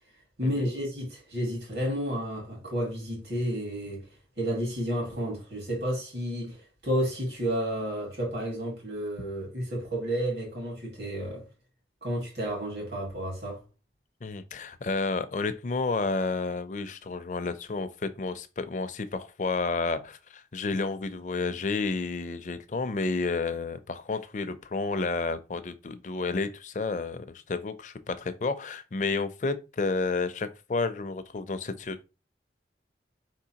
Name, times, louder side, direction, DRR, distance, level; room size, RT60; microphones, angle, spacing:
voice 1, 0.4-4.1 4.4-11.5 12.0-13.6, equal, 65° right, 2.0 m, -31 dB
voice 2, 14.2-32.0, left 3 dB, 45° left, 0.4 m, -31 dB
4.6 x 3.6 x 2.8 m
head